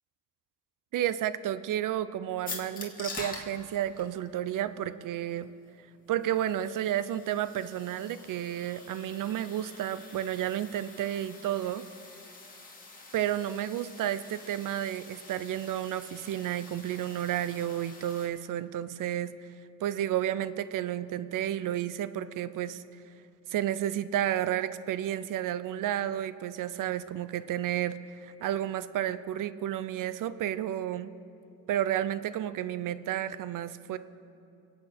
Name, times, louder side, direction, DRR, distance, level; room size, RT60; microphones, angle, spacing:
voice 1, 0.9-5.5 6.1-11.8 13.1-19.3 19.8-22.8 23.5-31.1 31.7-34.0, right 11 dB, 60° right, 15 dB, 0.7 m, -31 dB
sound 1, 2.5-18.3, left 3 dB, 25° left, 2.5 m, -47 dB
25.5 x 8.6 x 4.4 m, 2.6 s
supercardioid pair, 70°, 35 cm